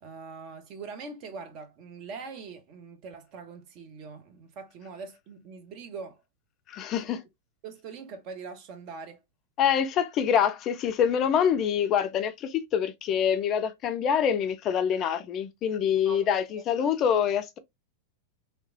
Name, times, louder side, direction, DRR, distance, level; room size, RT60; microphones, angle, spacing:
voice 1, 0.0-6.2 7.0-7.2 7.6-9.2 16.0-16.4, right 4 dB, 40° right, 0.6 m, -42 dB
voice 2, 6.7-7.2 9.6-17.6, left 8 dB, 35° left, 0.3 m, -25 dB
2.8 x 2.1 x 2.5 m
figure-of-eight pair, 90°, 0 cm